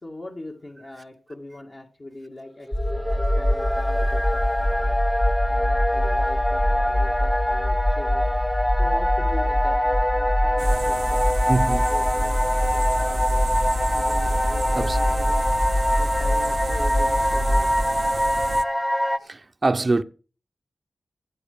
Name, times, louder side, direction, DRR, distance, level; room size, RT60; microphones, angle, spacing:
voice 1, 0.0-5.0 5.5-8.3 8.8-13.4 13.9-15.6 16.0-17.7, left 1 dB, 45° left, 2.2 m, -41 dB
sound 1, 2.7-17.8, equal, 25° left, 1.3 m, -25 dB
sound 2, 2.7-19.2, equal, 10° left, 0.8 m, -24 dB
sound 3, 10.6-18.6, right 5 dB, 80° right, 0.6 m, -34 dB
voice 2, 11.5-11.9 14.8-15.0 19.2-20.0, right 3 dB, 40° right, 0.7 m, -23 dB
15.5 x 8.0 x 5.2 m
cardioid pair, 65°, 0 cm